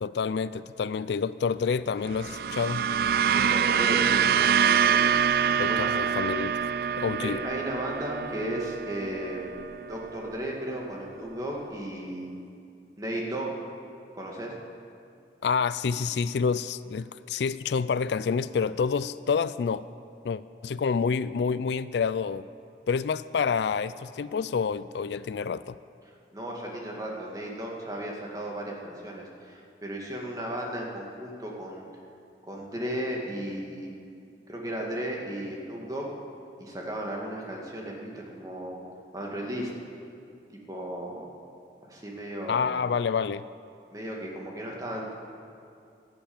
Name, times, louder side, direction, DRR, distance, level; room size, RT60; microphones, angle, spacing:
voice 1, 0.0-2.8 5.6-6.6 7.0-7.4 15.4-19.9 20.2-22.5 22.9-25.8 42.5-43.5, left 5 dB, 75° left, 16 dB, 0.4 m, -28 dB
sound 1, 2.1-10.5, right 7 dB, 55° right, 0.3 m, -26 dB
voice 2, 3.3-5.9 7.2-12.3 13.0-13.5 14.2-14.5 26.3-31.8 32.4-33.9 34.5-36.1 36.6-38.8 39.1-39.7 40.5-41.2 41.8-42.7 43.9-45.1, right 1 dB, 20° right, -2 dB, 2.1 m, -35 dB
12.5 x 11.5 x 8.8 m, 2.5 s
head